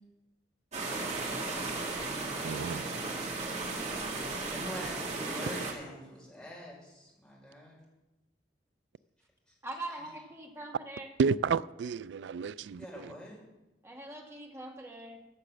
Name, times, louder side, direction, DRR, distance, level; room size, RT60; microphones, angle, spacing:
sound 1, 0.7-5.7, right 3 dB, 40° right, 2.2 m, -35 dB
voice 1, 2.4-2.9 11.2-13.1, right 5 dB, 85° right, 0.3 m, -31 dB
voice 2, 4.3-7.8 9.9-10.0 12.8-13.4, equal, 5° left, 5.1 m, -45 dB
voice 3, 9.6-11.1 13.8-15.2, right 2 dB, 15° right, 2.0 m, -42 dB
15.0 x 6.6 x 7.4 m
head